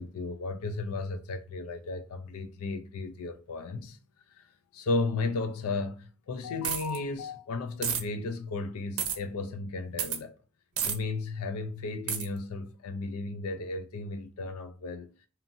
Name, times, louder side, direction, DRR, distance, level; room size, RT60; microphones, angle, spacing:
voice 1, 0.0-4.0 4.3-4.5 4.7-10.4 10.9-15.1, left 3 dB, 90° left, 0.4 m, -34 dB
sound 1, 6.6-7.0 7.8-8.0 9.0-9.2 10.0-10.2 10.8-11.0 12.1-12.3, right 8 dB, 80° right, 0.5 m, -30 dB
2.8 x 2.6 x 2.4 m
head